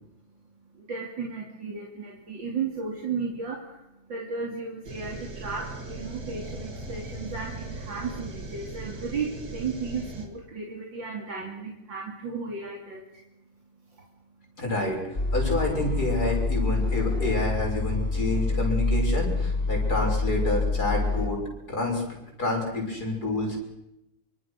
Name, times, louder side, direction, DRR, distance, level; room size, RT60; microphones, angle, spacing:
voice 1, 0.9-3.6 4.1-13.0, right 5 dB, 65° right, 0 dB, 3.4 m, -34 dB
sound 1, 4.8-10.3, right 2 dB, 50° right, 3.3 m, -38 dB
voice 2, 14.6-15.0 15.3-21.4 21.7-22.0 22.4-23.6, left 2 dB, 50° left, 0 dB, 6.9 m, -28 dB
sound 2, 15.1-21.3, left 3 dB, 30° left, 3.5 m, -26 dB
26.0 x 25.0 x 6.5 m, 0.87 s
omnidirectional pair, 2.2 m